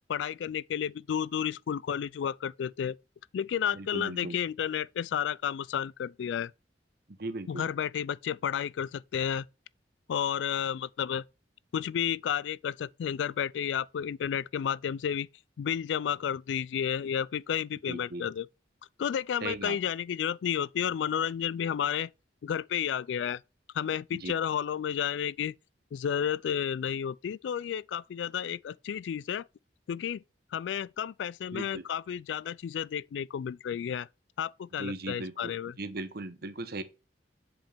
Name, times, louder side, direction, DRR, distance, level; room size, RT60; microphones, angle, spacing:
voice 1, 0.1-3.0 3.3-6.5 7.5-9.4 10.1-11.2 11.7-15.3 15.6-18.5 19.0-22.1 22.4-23.4 23.7-25.5 25.9-29.4 29.9-30.2 30.5-34.1 34.4-35.8, left 8 dB, 80° left, 0.3 m, -31 dB
voice 2, 3.7-4.4 7.2-7.7 17.9-18.2 19.4-19.8 24.1-24.3 31.5-31.8 34.8-36.8, right 2 dB, 60° right, 1.0 m, -38 dB
7.4 x 5.0 x 3.4 m
head